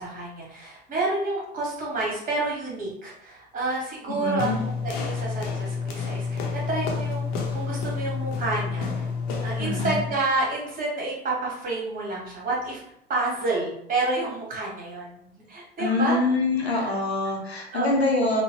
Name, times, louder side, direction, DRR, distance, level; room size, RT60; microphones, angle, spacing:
voice 1, 0.0-9.0 9.4-12.8 13.1-15.2 15.5-16.2 16.6-16.9 17.7-17.9, right 2 dB, 25° right, -4 dB, 1.4 m, -29 dB
voice 2, 4.1-4.6 9.6-10.0 15.8-18.4, left 2 dB, 90° left, 0 dB, 0.6 m, -25 dB
sound 1, 4.4-10.2, left 5 dB, 50° left, 0.7 m, -29 dB
3.7 x 2.1 x 2.9 m, 0.75 s
figure-of-eight pair, 70°, 31 cm